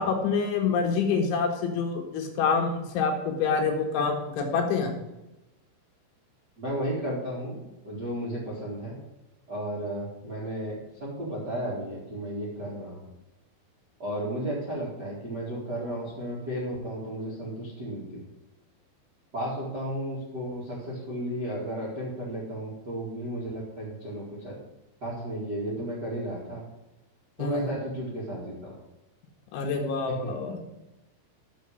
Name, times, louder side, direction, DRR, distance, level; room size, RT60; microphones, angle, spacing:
voice 1, 0.0-4.9 27.4-27.7 29.5-30.6, left 5 dB, 75° left, 2 dB, 3.5 m, -26 dB
voice 2, 6.6-8.9 9.5-13.0 14.0-18.2 19.3-24.6 25.0-26.6 27.4-28.7 30.0-30.1, right 1 dB, 35° right, -6 dB, 1.6 m, -33 dB
7.2 x 6.5 x 7.6 m, 0.97 s
omnidirectional pair, 5.9 m